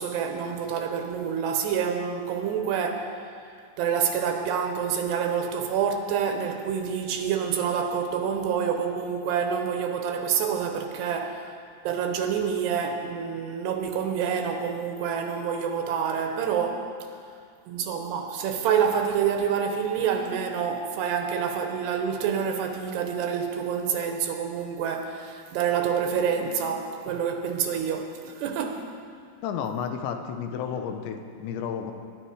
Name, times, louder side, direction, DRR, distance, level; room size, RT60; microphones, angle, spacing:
voice 1, 0.0-3.1 3.8-11.5 11.8-16.9 17.7-28.9, right 7 dB, 80° right, 5 dB, 2.8 m, -27 dB
voice 2, 29.4-31.9, left 7 dB, 85° left, 6 dB, 3.1 m, -32 dB
21.0 x 11.0 x 4.8 m, 2.2 s
omnidirectional pair, 5.2 m